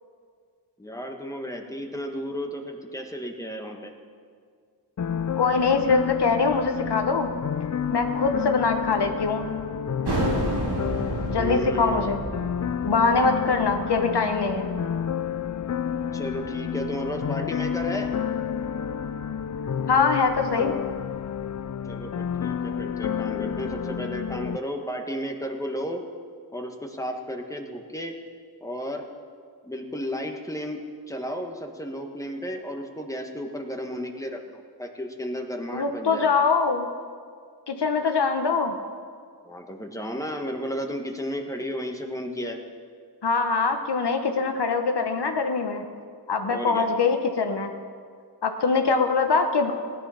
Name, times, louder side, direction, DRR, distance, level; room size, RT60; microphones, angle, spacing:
voice 1, 0.8-3.9 11.3-12.2 16.1-18.1 21.8-26.0 26.5-28.2 28.6-29.1 29.6-30.8 31.1-36.3 39.4-42.6 46.4-46.9, equal, 10° left, 3 dB, 1.3 m, -33 dB
sound 1, 5.0-24.6, left 8 dB, 50° left, 0.4 m, -30 dB
voice 2, 5.4-7.3 7.9-9.5 11.3-12.2 12.8-14.7 19.9-20.7 35.7-36.9 37.7-38.7 43.2-45.8 46.3-47.7 48.4-49.7, left 4 dB, 85° left, 5 dB, 1.1 m, -23 dB
sound 2, 10.0-15.4, right 2 dB, 80° right, 2.1 m, -31 dB
16.5 x 11.0 x 5.8 m, 2.1 s
wide cardioid pair, 80°, 39 cm